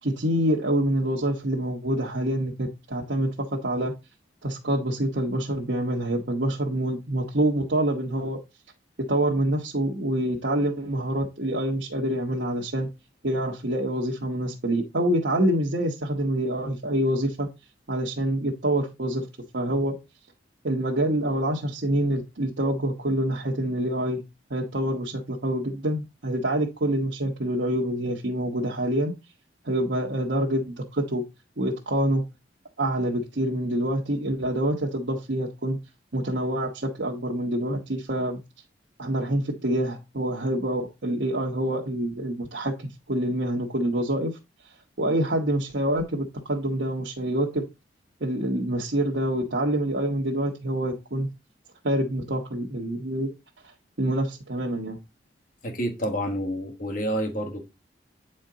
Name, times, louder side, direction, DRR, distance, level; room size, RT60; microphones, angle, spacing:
voice 1, 0.0-3.9 4.4-8.4 9.1-12.9 13.2-17.5 17.9-19.3 19.5-19.9 20.6-24.2 24.5-29.1 29.6-31.2 31.6-32.2 32.8-35.8 36.1-38.4 39.0-44.4 45.0-47.6 48.2-51.3 51.8-53.3 54.0-55.0, right 1 dB, 65° right, 1.2 m, -26 dB
voice 2, 55.6-57.6, equal, 45° left, 1.5 m, -28 dB
8.9 x 4.4 x 3.8 m
head